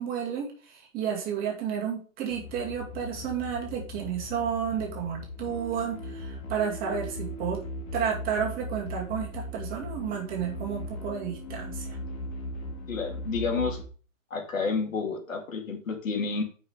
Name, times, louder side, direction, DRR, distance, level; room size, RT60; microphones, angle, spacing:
voice 1, 0.0-7.6 7.9-12.0, right 8 dB, 20° right, -1 dB, 2.4 m, -31 dB
sound 1, 2.3-13.8, left 1 dB, 35° left, 1.9 m, -38 dB
voice 2, 12.9-13.8 14.3-16.4, left 4 dB, 70° left, 3 dB, 2.4 m, -30 dB
9.3 x 5.3 x 3.7 m, 0.40 s
hypercardioid pair, 140°, 41 cm